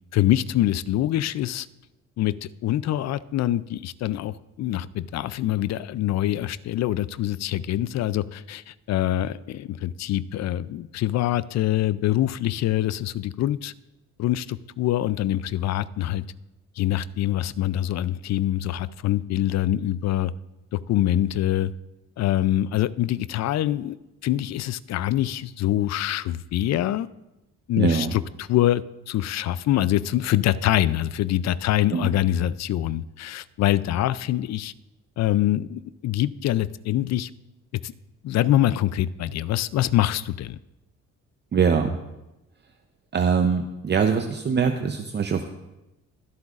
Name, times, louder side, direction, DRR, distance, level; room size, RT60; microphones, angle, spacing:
voice 1, 0.1-1.7 2.2-13.7 14.2-16.2 16.8-20.3 20.7-21.7 22.2-24.0 24.2-27.1 27.7-34.7 35.2-37.3 37.8-37.9 38.2-40.6, left 13 dB, 60° left, 18 dB, 0.4 m, -24 dB
voice 2, 27.8-28.1 31.9-32.1 41.5-42.0 43.1-45.5, right 6 dB, 35° right, 6 dB, 0.6 m, -23 dB
22.0 x 8.0 x 2.5 m, 0.97 s
cardioid pair, 90°, 30 cm